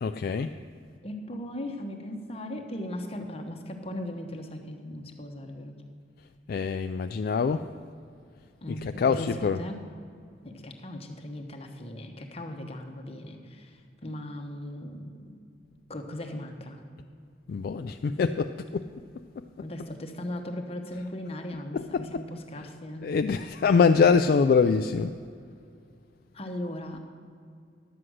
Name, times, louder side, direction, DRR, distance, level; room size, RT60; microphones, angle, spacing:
voice 1, 0.0-0.5 6.5-7.7 8.7-9.6 17.5-18.9 20.9-21.0 21.7-22.2 22.6-22.7 23.0-25.1, left 5 dB, 55° left, 8 dB, 0.3 m, -24 dB
voice 2, 1.0-5.8 8.6-9.8 10.4-15.2 15.9-16.8 19.6-23.1 26.3-27.0, left 1 dB, 35° left, 4 dB, 1.1 m, -38 dB
11.0 x 7.7 x 6.3 m, 2.3 s
head